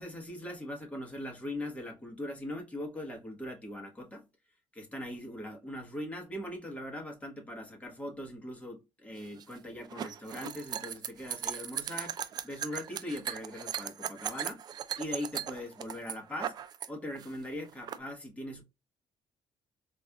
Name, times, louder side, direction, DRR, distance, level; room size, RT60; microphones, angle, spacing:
voice 1, 0.0-4.3 4.7-12.2 12.4-14.6 15.0-16.5 16.9-18.6, left 1 dB, 15° left, 1.1 m, -40 dB
sound 1, 9.2-16.9 17.1-18.0, right 9 dB, 45° right, 0.4 m, -38 dB
4.2 x 2.4 x 2.3 m
cardioid pair, 120°, 10 cm